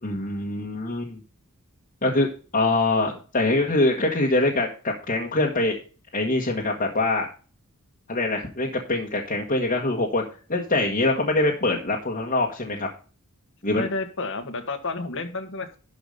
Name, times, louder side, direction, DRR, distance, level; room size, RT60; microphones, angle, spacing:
voice 1, 0.0-1.2 2.0-2.3 2.5-5.8 6.1-7.3 8.1-10.2 10.5-12.9 13.6-13.9, left 2 dB, 40° left, -2 dB, 1.5 m, -24 dB
voice 2, 13.7-15.8, left 3 dB, 60° left, 8 dB, 1.5 m, -31 dB
12.0 x 5.0 x 5.3 m, 0.36 s
head